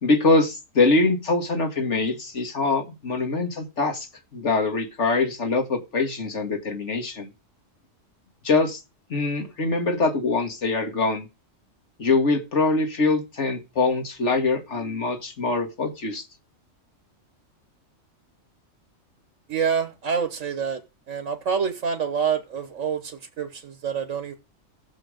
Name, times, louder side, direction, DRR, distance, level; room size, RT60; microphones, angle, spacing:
voice 1, 0.0-4.1 4.3-7.3 8.4-8.8 9.1-11.3 12.0-16.2, left 3 dB, 65° left, 2.1 m, -23 dB
voice 2, 19.5-20.8 21.1-24.3, right 6 dB, 80° right, 1.6 m, -27 dB
15.5 x 7.0 x 5.0 m
omnidirectional pair, 1.3 m